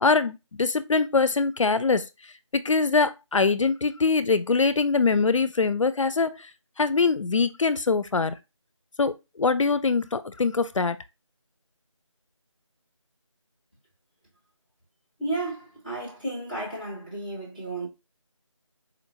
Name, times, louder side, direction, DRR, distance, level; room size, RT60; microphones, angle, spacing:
voice 1, 0.0-2.1 2.5-6.5 6.8-8.4 9.0-11.0, left 4 dB, 70° left, 0.4 m, -23 dB
voice 2, 15.2-17.9, right 2 dB, 20° right, 1.5 m, -33 dB
4.3 x 2.9 x 2.6 m
figure-of-eight pair, 175°, 17 cm